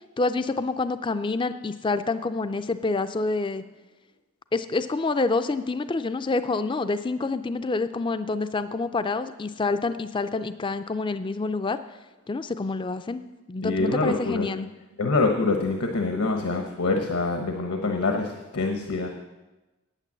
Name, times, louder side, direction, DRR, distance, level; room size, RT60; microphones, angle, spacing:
voice 1, 0.2-3.6 4.5-11.8 12.3-14.7, left 3 dB, 20° left, 11 dB, 0.3 m, -27 dB
voice 2, 13.6-14.5 15.0-19.1, left 3 dB, 80° left, 3 dB, 1.0 m, -25 dB
9.1 x 8.9 x 7.4 m, 1.1 s
head